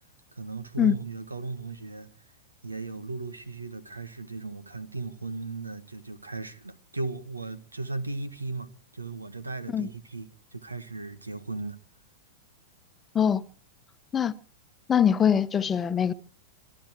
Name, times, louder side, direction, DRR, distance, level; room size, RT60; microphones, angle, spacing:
voice 1, 0.4-2.1 2.6-11.8, right 3 dB, 90° right, 1.4 m, -36 dB
voice 2, 14.9-16.1, left 8 dB, 20° left, 0.9 m, -23 dB
25.0 x 11.5 x 4.6 m
figure-of-eight pair, 100°, 0 cm